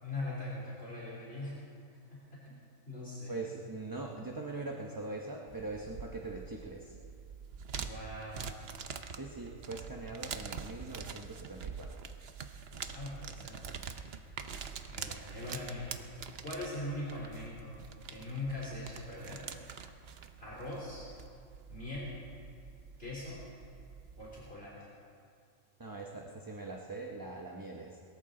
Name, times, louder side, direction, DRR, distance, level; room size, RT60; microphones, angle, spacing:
voice 1, 0.0-1.6 2.9-3.4 7.7-8.5 12.8-13.7 14.9-15.9 16.4-17.7 18.1-19.5 20.4-21.1 21.7-22.1 23.0-23.4 24.2-24.9, left 2 dB, 45° left, -7 dB, 3.5 m, -41 dB
voice 2, 3.3-7.0 9.1-12.0 25.8-28.0, right 3 dB, 20° right, 0 dB, 0.8 m, -42 dB
sound 1, 5.5-24.5, right 6 dB, 55° right, 0.9 m, -45 dB
21.5 x 13.5 x 3.8 m, 2.4 s
omnidirectional pair, 1.4 m